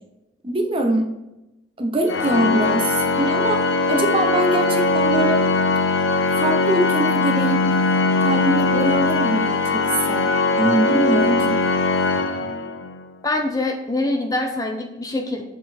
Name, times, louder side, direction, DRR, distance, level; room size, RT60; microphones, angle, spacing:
voice 1, 0.4-1.1 1.8-3.6 3.9-5.4 6.4-7.6 8.2-11.6, right 2 dB, 25° right, 4 dB, 0.7 m, -23 dB
Organ, 2.1-13.0, left 3 dB, 80° left, 0.6 m, -20 dB
voice 2, 13.2-15.4, left 2 dB, 20° left, 3 dB, 0.6 m, -24 dB
7.2 x 4.0 x 4.3 m, 0.95 s
head